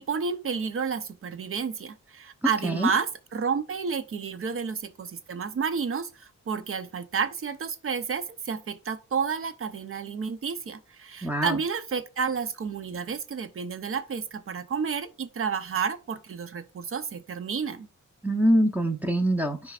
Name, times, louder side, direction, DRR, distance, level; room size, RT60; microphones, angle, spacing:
voice 1, 0.0-17.9, right 6 dB, 45° right, 0.8 m, -31 dB
voice 2, 11.2-11.6 18.2-19.7, equal, 5° right, 0.9 m, -24 dB
12.5 x 4.7 x 2.5 m
cardioid pair, 90°, 29 cm